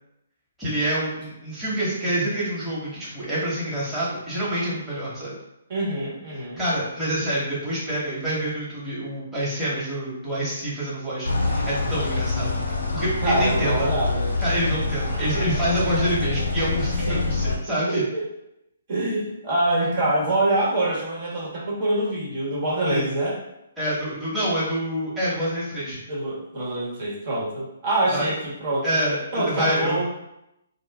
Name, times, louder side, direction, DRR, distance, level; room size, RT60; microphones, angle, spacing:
voice 1, 0.6-5.4 6.6-13.9 14.4-18.0 22.8-23.2 23.8-26.0 28.1-28.2 28.8-30.0, right 1 dB, 5° right, -11 dB, 1.2 m, -27 dB
voice 2, 5.7-6.6 13.2-14.3 17.1-17.2 17.9-18.2 18.9-23.4 26.1-28.8 29.3-30.0, right 1 dB, 45° right, -6 dB, 1.3 m, -25 dB
sound 1, 11.3-17.6, left 3 dB, 75° left, 0.7 m, -25 dB
2.5 x 2.3 x 3.5 m, 0.85 s
figure-of-eight pair, 135°, 0 cm